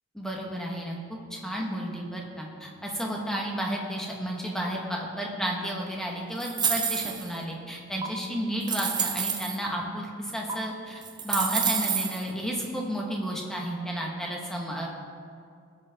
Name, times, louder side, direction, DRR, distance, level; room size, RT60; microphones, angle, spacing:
voice 1, 0.1-14.9, equal, 5° left, -2 dB, 1.6 m, -32 dB
sound 1, 6.4-7.4 8.0-8.1 8.6-9.6 10.5-10.6 11.0-12.2, right 7 dB, 20° right, 0.8 m, -28 dB
19.0 x 7.5 x 3.7 m, 2.4 s
head